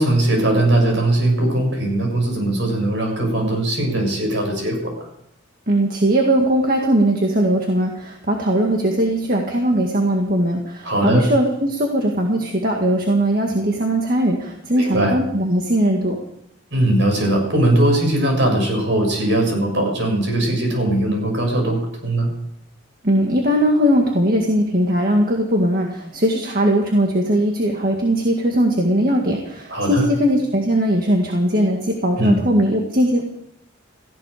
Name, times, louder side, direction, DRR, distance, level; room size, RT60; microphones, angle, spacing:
voice 1, 0.0-5.1 10.8-11.2 14.8-15.2 16.7-22.3 29.7-30.1 32.2-32.4, right 1 dB, 60° right, 2 dB, 6.8 m, -19 dB
voice 2, 5.7-16.2 23.0-33.3, right 1 dB, 45° right, 1 dB, 1.9 m, -19 dB
18.0 x 15.0 x 5.0 m, 0.73 s
head